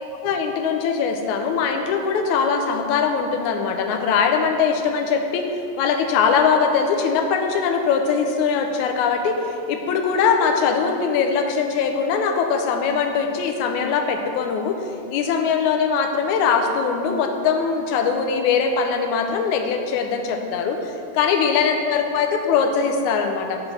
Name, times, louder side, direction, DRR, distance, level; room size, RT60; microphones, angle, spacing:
voice 1, 0.2-5.5 5.8-9.4 9.7-14.8 15.1-23.6, left 6 dB, 80° left, 5 dB, 2.0 m, -21 dB
7.6 x 4.8 x 5.6 m, 2.5 s
omnidirectional pair, 3.5 m